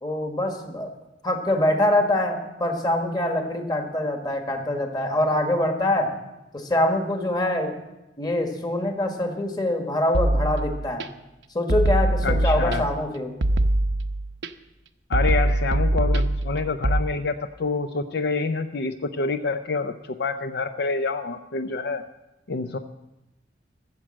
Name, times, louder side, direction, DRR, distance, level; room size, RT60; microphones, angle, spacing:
voice 1, 0.0-0.9 1.2-6.1 6.5-7.8 8.2-11.1 11.5-13.3, left 1 dB, 25° left, 4 dB, 1.5 m, -24 dB
sound 1, 10.1-11.1 11.7-13.0 13.4-14.5 15.1-17.0, right 1 dB, 80° right, 0.7 m, -23 dB
voice 2, 12.2-12.8 15.1-22.0 22.5-22.8, left 4 dB, 65° left, 8 dB, 0.5 m, -27 dB
14.0 x 7.4 x 7.5 m, 0.97 s
head